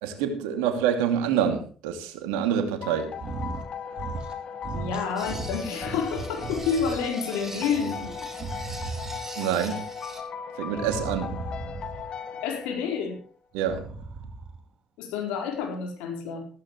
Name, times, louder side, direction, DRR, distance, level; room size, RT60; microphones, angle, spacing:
voice 1, 0.0-3.1 9.3-9.9 10.5-11.4 13.5-13.9, right 8 dB, 75° right, 2.6 m, -26 dB
sound 1, 2.8-13.2, left 6 dB, 50° left, 1.7 m, -38 dB
sound 2, 3.1-3.7 3.9-4.4 4.6-7.0 7.4-9.3 10.7-12.1 13.5-14.6, right 3 dB, 45° right, 3.6 m, -37 dB
voice 2, 4.7-8.1 12.4-13.2 15.0-16.5, left 6 dB, 75° left, 4.5 m, -29 dB
sound 3, 5.2-10.2, right 2 dB, 20° right, 4.6 m, -43 dB
15.5 x 15.0 x 3.2 m
hypercardioid pair, 50°, 2 cm